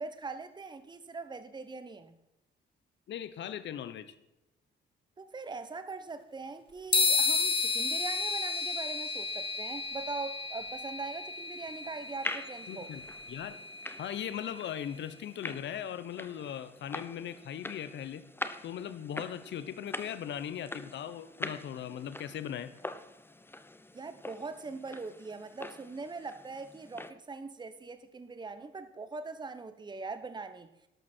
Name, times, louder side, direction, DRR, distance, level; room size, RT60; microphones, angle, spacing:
voice 1, 0.0-2.1 5.2-12.9 23.9-30.7, right 4 dB, 20° right, 1.0 m, -41 dB
voice 2, 3.1-4.1 12.7-13.0 13.3-13.6 14.0-18.2 18.6-22.7, left 9 dB, 65° left, 1.0 m, -39 dB
sound 1, 6.9-14.6, left 4 dB, 25° left, 1.7 m, -32 dB
sound 2, 11.1-27.1, left 2 dB, 10° left, 0.9 m, -44 dB
13.0 x 12.0 x 4.5 m
cardioid pair, 90°, 20 cm